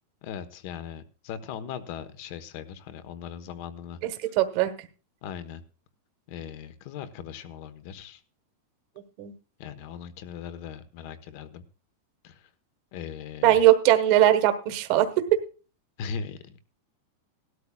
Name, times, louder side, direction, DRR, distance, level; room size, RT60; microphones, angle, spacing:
voice 1, 0.2-4.0 5.2-5.6 6.3-8.2 9.6-11.6 12.2-12.5 12.9-13.7 16.0-16.7, left 7 dB, 40° left, 12 dB, 1.1 m, -39 dB
voice 2, 4.0-4.7 9.2-9.3 13.4-15.4, right 13 dB, 40° right, 9 dB, 1.3 m, -20 dB
18.5 x 12.5 x 2.4 m, 0.35 s
supercardioid pair, 175°, 0 cm